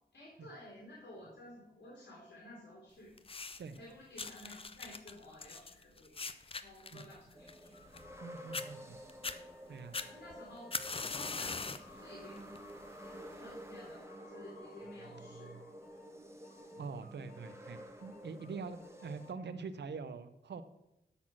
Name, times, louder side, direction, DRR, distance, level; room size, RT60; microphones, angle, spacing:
voice 1, 0.1-3.1 3.7-6.2 6.5-7.8 9.7-10.7 11.0-12.6 13.0-15.6, left 1 dB, 80° left, -4 dB, 2.9 m, -53 dB
sound 1, 3.2-3.8 4.2-8.2 8.5-8.7 9.1-9.4 9.9-11.9 12.4-12.7 13.5-13.6, left 4 dB, 35° left, 0.5 m, -41 dB
sound 2, 7.3-19.3, equal, 15° right, 1.1 m, -51 dB
sound 3, 7.7-13.4 13.8-16.1 16.4-19.3, left 4 dB, 60° left, 1.4 m, -61 dB
voice 2, 8.2-9.0 9.7-10.0 15.1-15.6 16.8-20.6, right 5 dB, 85° right, 12 dB, 0.6 m, -45 dB
12.5 x 4.3 x 6.0 m, 0.91 s
wide cardioid pair, 100°, 17 cm